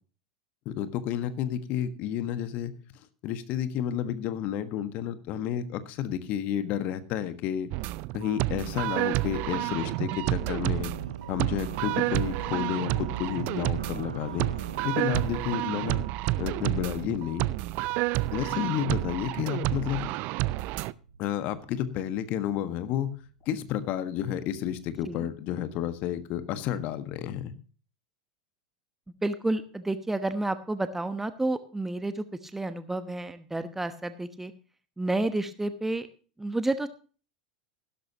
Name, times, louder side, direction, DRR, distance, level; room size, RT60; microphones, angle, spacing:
voice 1, 0.6-2.7 3.2-7.7 8.1-10.9 11.3-14.5 14.8-16.1 16.4-17.5 18.3-20.1 21.2-23.1 23.4-27.5, left 10 dB, 45° left, 11 dB, 1.5 m, -31 dB
sound 1, 7.7-20.9, right 19 dB, 45° right, 0.5 m, -30 dB
sound 2, 9.3-24.2, right 5 dB, 80° right, 0.7 m, -44 dB
voice 2, 29.2-32.2 32.5-34.5 35.0-36.1 36.4-36.9, right 2 dB, 10° right, 11 dB, 1.0 m, -30 dB
16.0 x 13.0 x 2.9 m, 0.38 s
figure-of-eight pair, 85°, 4 cm